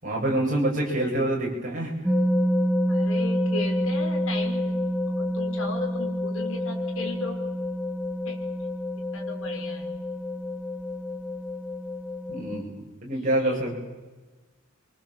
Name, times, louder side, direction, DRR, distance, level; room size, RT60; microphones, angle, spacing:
voice 1, 0.0-1.9 12.3-12.7 13.0-13.8, right 1 dB, 40° right, -2 dB, 7.4 m, -26 dB
sound 1, 2.0-12.6, equal, 5° right, 2.6 m, -28 dB
voice 2, 2.9-4.9 5.1-7.4 8.3-8.4 8.9-9.9 13.4-13.6, left 3 dB, 75° left, 1 dB, 5.3 m, -37 dB
24.5 x 24.5 x 7.4 m, 1.2 s
head